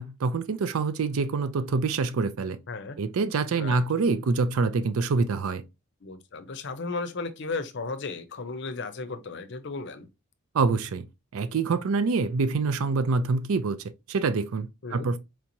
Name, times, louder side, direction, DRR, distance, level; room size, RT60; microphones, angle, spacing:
voice 1, 0.0-2.6 3.0-5.6 10.5-11.1 11.3-15.2, right 4 dB, 70° right, 0.4 m, -26 dB
voice 2, 2.7-3.0 3.6-3.8 6.0-10.1 14.8-15.1, left 3 dB, 50° left, 0.6 m, -35 dB
4.5 x 2.9 x 2.6 m
head